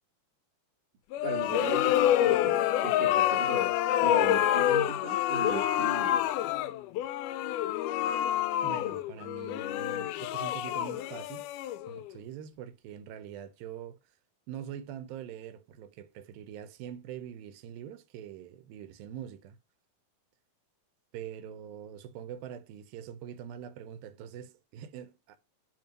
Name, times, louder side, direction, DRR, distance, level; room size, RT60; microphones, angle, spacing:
sound 1, 1.1-12.1, left 12 dB, 85° left, 1.8 m, -27 dB
voice 1, 1.2-3.7 4.0-6.2, right 6 dB, 65° right, 2.9 m, -38 dB
voice 2, 8.6-11.5 11.9-14.0 14.5-19.6 21.1-25.4, right 9 dB, 85° right, 2.6 m, -43 dB
9.0 x 3.0 x 5.2 m
omnidirectional pair, 4.1 m